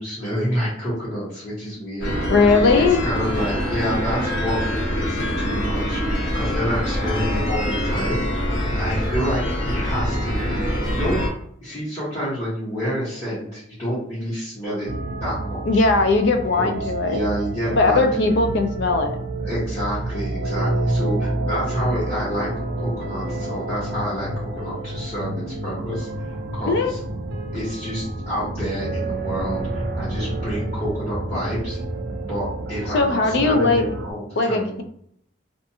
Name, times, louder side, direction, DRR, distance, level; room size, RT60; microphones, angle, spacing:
voice 1, 0.0-2.2 2.7-11.2 11.6-14.9 15.2-15.8 16.6-18.4 19.4-22.5 22.8-27.0 27.5-31.8 32.2-34.8, equal, 30° left, -12 dB, 1.1 m, -28 dB
sound 1, 2.0-11.3, equal, 90° left, 1.1 m, -24 dB
voice 2, 2.3-3.0 15.7-17.2 17.7-19.2 26.7-26.9 32.9-33.8 34.4-34.8, left 3 dB, 60° left, 6 dB, 0.4 m, -19 dB
sound 2, 14.9-34.1, right 2 dB, 60° right, 0.4 m, -29 dB
2.5 x 2.3 x 2.7 m, 0.68 s
head